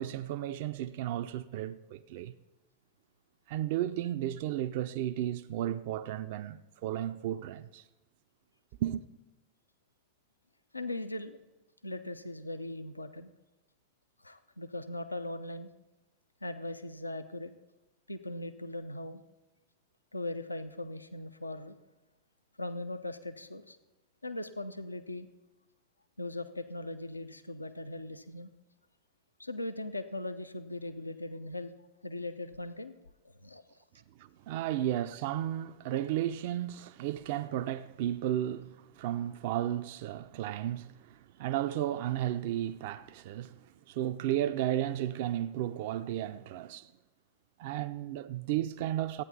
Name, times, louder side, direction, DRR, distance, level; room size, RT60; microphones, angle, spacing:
voice 1, 0.0-2.3 3.5-7.8 8.8-9.0 34.2-46.9 47.6-49.2, right 12 dB, 50° right, 0.4 m, -34 dB
voice 2, 10.7-11.4 11.8-13.3 14.2-15.7 16.4-17.5 18.1-19.2 20.1-21.8 22.6-23.8 24.2-25.3 26.2-28.5 29.4-31.7 32.0-32.9 33.2-33.6, left 2 dB, 85° left, 0.4 m, -39 dB
13.0 x 9.1 x 4.0 m
figure-of-eight pair, 90°, 0 cm